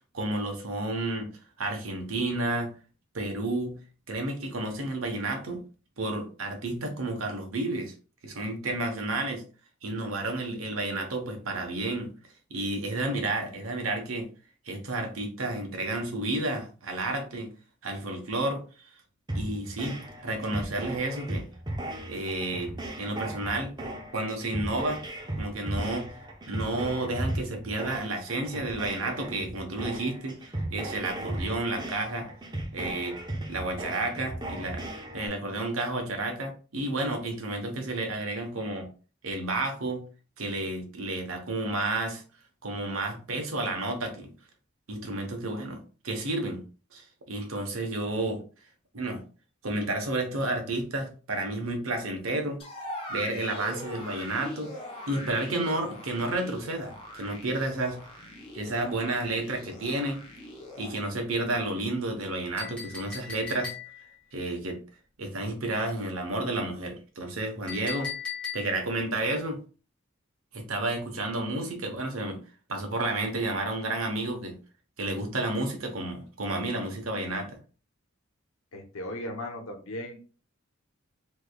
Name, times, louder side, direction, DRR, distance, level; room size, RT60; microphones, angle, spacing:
voice 1, 0.1-1.3 1.6-2.7 3.1-3.8 4.1-5.6 6.0-7.9 8.2-9.4 9.8-12.1 12.5-14.3 14.7-17.5 17.8-18.6 19.3-21.5 22.0-23.7 24.1-25.0 25.4-26.1 26.5-32.3 32.7-33.2 33.5-34.8 35.1-38.9 39.2-40.0 40.4-42.2 42.6-44.3 44.9-46.6 46.9-48.4 48.9-49.2 49.6-52.6 53.1-54.7 55.1-58.0 58.5-60.2 60.8-63.8 64.3-64.8 65.2-68.1 68.5-69.6 70.5-72.4 72.7-74.6 75.0-77.6, right 2 dB, 90° right, 4 dB, 1.0 m, -31 dB
sound 1, 19.3-35.3, right 1 dB, 20° right, 0.7 m, -36 dB
sound 2, 52.6-60.9, left 1 dB, 25° left, 0.8 m, -42 dB
Chink clink, 62.6-64.2 67.7-69.0, left 7 dB, 5° left, 1.3 m, -38 dB
voice 2, 78.7-80.2, left 1 dB, 90° left, 3 dB, 0.9 m, -37 dB
3.4 x 3.2 x 2.3 m, 0.35 s
head